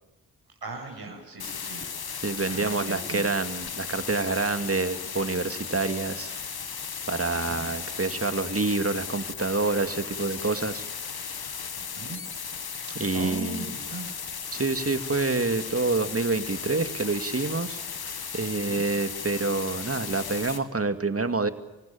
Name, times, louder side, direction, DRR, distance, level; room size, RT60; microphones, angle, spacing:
voice 1, 0.6-1.8 2.5-3.2 7.4-7.7 11.8-12.2 12.7-14.1 18.6-18.8, right 2 dB, 60° right, 2 dB, 7.9 m, -39 dB
sound 1, 1.4-20.6, left 6 dB, 60° left, 2.2 m, -36 dB
voice 2, 2.2-6.3 7.1-10.8 13.0-13.7 14.5-21.5, right 3 dB, 35° right, 9 dB, 2.3 m, -27 dB
29.0 x 16.5 x 9.0 m, 1.1 s
supercardioid pair, 40°, 42 cm